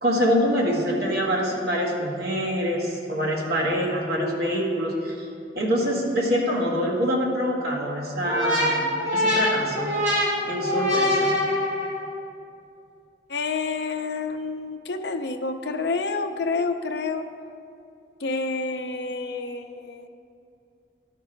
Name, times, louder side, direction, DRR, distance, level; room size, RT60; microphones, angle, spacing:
voice 1, 0.0-5.3 5.6-9.9 10.4-11.4, equal, 60° right, -3 dB, 1.6 m, -25 dB
sound 1, 8.2-12.1, left 1 dB, 40° right, 1.7 m, -24 dB
voice 2, 13.3-17.3 18.2-20.1, left 3 dB, 70° left, 6 dB, 0.6 m, -28 dB
12.5 x 5.9 x 4.5 m, 2.5 s
head